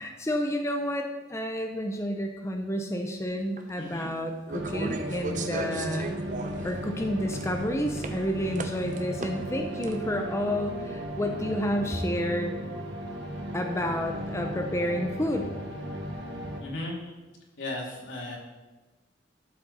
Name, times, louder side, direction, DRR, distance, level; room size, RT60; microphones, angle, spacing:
voice 1, 0.0-6.2 6.6-12.5 13.5-15.5, equal, 15° left, 3 dB, 0.7 m, -30 dB
sound 1, 3.6-3.7 4.5-6.7 7.1-7.6 8.0-8.1 8.5-9.5 9.8-9.9, right 3 dB, 40° right, 0.8 m, -36 dB
voice 2, 3.8-4.1 16.6-17.0 17.6-18.4, left 2 dB, 90° left, -3 dB, 2.8 m, -36 dB
sound 2, 4.5-16.6, equal, 70° right, 1.5 m, -36 dB
12.0 x 7.2 x 4.2 m, 1.2 s
head